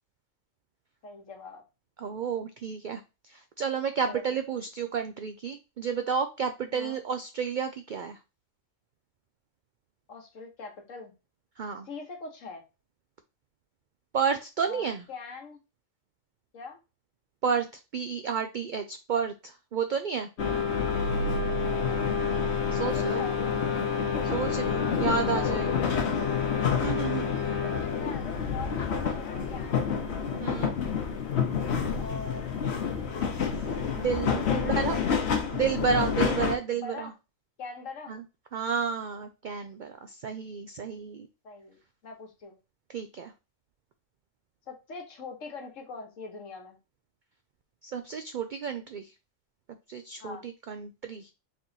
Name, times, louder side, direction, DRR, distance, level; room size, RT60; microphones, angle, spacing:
voice 1, 1.0-1.6 4.1-4.2 6.7-7.0 10.1-11.1 11.8-12.6 14.6-15.6 16.5-16.8 20.7-21.1 21.6-22.2 22.8-23.6 24.7-26.4 27.5-30.1 31.9-32.7 34.3-34.8 36.7-37.1 37.6-38.1 41.4-42.6 44.7-46.8 50.2-50.5, left 4 dB, 70° left, 2 dB, 1.5 m, -43 dB
voice 2, 2.0-8.2 11.6-11.9 14.1-15.1 17.4-17.7 17.9-20.3 22.7-23.3 24.3-25.7 26.8-27.3 30.4-30.7 34.0-35.0 35.5-37.1 38.1-38.2 38.5-41.3 42.9-43.3 47.8-49.1 49.9-51.3, right 6 dB, 80° right, 7 dB, 0.4 m, -31 dB
sound 1, 20.4-36.6, left 6 dB, 55° left, 1.1 m, -28 dB
4.2 x 3.1 x 3.9 m, 0.28 s
omnidirectional pair, 1.4 m